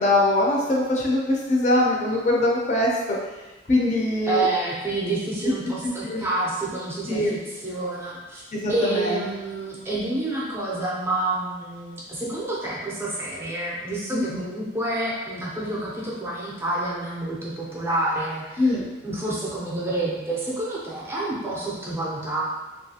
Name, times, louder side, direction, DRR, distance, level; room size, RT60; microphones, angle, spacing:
voice 1, 0.0-3.2 3.7-4.5 5.4-5.5 6.0-6.2 7.1-7.4 8.5-9.2 14.1-14.5 18.6-18.8, left 1 dB, 40° left, -3 dB, 0.5 m, -22 dB
voice 2, 4.2-7.2 7.6-8.4 8.7-18.7 19.0-22.4, right 2 dB, 15° right, -5 dB, 0.4 m, -28 dB
2.6 x 2.4 x 2.7 m, 1.1 s
head